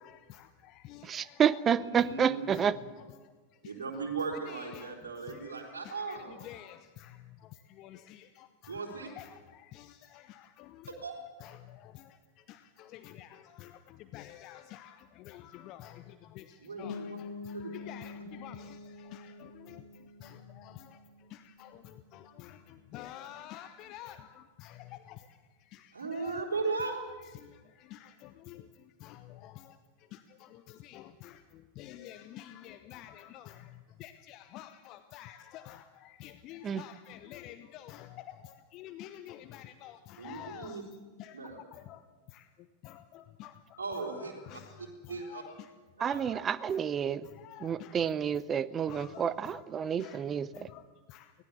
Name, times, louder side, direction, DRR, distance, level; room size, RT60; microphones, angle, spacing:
voice 1, 0.0-1.6 2.0-2.1 2.5-3.3 3.6-3.8 4.5-11.0 11.4-26.5 27.3-42.0 42.3-45.7 46.7-46.8 47.2-48.1 48.7-49.6 50.0-50.3 50.5-51.3, left 12 dB, 40° left, 0.9 m, -50 dB
voice 2, 1.1-2.8 36.6-36.8 46.0-47.3 47.6-50.5, right 8 dB, 25° right, 0.7 m, -29 dB
voice 3, 1.7-2.6 3.6-6.4 8.7-9.1 11.0-11.2 16.6-17.2 17.5-17.8 25.9-27.0 40.2-40.8 41.3-41.6 43.8-45.4 46.0-46.4, right 4 dB, 70° right, 4.1 m, -37 dB
sound 1, 16.8-22.4, left 4 dB, 55° left, 4.2 m, -46 dB
25.0 x 18.0 x 7.1 m
figure-of-eight pair, 90°, 0 cm